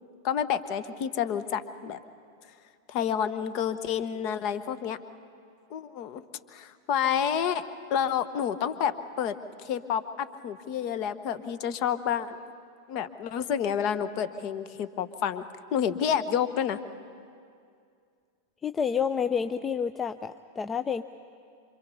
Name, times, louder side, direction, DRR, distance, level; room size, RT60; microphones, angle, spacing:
voice 1, 0.2-2.0 2.9-5.0 5.7-6.2 6.5-7.6 7.9-9.4 9.6-12.4 12.9-15.4 15.7-16.8, left 8 dB, 40° left, 12 dB, 1.2 m, -29 dB
voice 2, 18.6-21.0, left 7 dB, 20° left, 11 dB, 0.5 m, -29 dB
26.5 x 25.5 x 5.6 m, 2.3 s
figure-of-eight pair, 90°, 0 cm